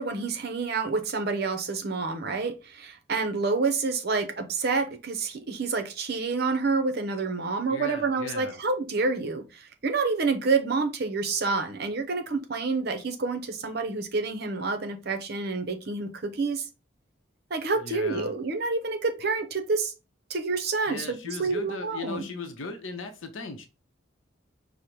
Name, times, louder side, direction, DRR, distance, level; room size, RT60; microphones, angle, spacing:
voice 1, 0.0-16.7 17.5-19.9 20.3-22.3, right 4 dB, 50° right, 0.7 m, -28 dB
voice 2, 7.7-8.6 17.8-18.3 20.9-23.7, left 3 dB, 75° left, 0.7 m, -37 dB
5.1 x 2.1 x 4.4 m
head